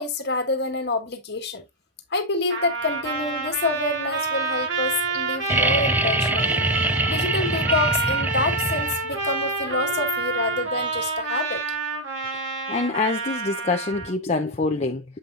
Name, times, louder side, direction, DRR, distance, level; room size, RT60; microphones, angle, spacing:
voice 1, 0.0-1.6 2.1-6.6 7.1-11.6, left 3 dB, 55° left, 1.7 m, -27 dB
Trumpet, 2.5-14.1, right 4 dB, 65° right, 2.9 m, -28 dB
sound 1, 5.5-9.3 11.0-11.1, right 2 dB, 10° right, 0.3 m, -24 dB
voice 2, 12.7-15.2, left 3 dB, 35° left, 0.6 m, -25 dB
7.8 x 5.3 x 2.5 m
head